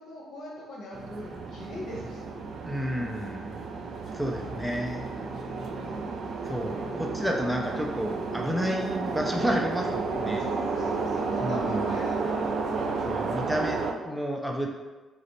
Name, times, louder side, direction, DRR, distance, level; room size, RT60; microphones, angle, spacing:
voice 1, 0.0-2.4 4.2-4.6 5.8-6.2 6.9-7.2 9.0-9.2 10.3-13.1, left 1 dB, 70° left, -3 dB, 1.1 m, -41 dB
sound 1, 0.9-13.9, right 4 dB, 65° right, 0.4 m, -32 dB
voice 2, 2.6-3.6 4.1-5.1 6.4-10.4 11.4-11.8 13.0-14.7, equal, 5° right, 0 dB, 0.4 m, -31 dB
sound 2, 4.2-13.4, equal, 85° right, 1.0 m, -47 dB
4.9 x 2.0 x 3.0 m, 1.2 s
cardioid pair, 90°, 0 cm